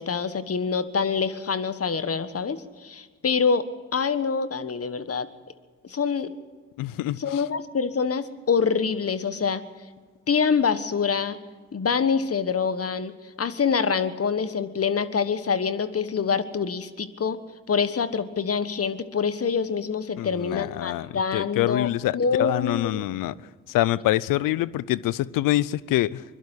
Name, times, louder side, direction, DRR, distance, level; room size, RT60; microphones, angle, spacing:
voice 1, 0.0-3.6 3.9-5.3 5.9-6.3 7.2-9.6 10.3-11.4 11.7-17.4 17.7-23.0, left 6 dB, 45° left, 12 dB, 1.4 m, -25 dB
voice 2, 6.8-7.4 20.2-23.3 23.7-26.2, left 15 dB, 85° left, 21 dB, 0.6 m, -25 dB
22.5 x 12.0 x 9.7 m, 1.4 s
supercardioid pair, 50°, 32 cm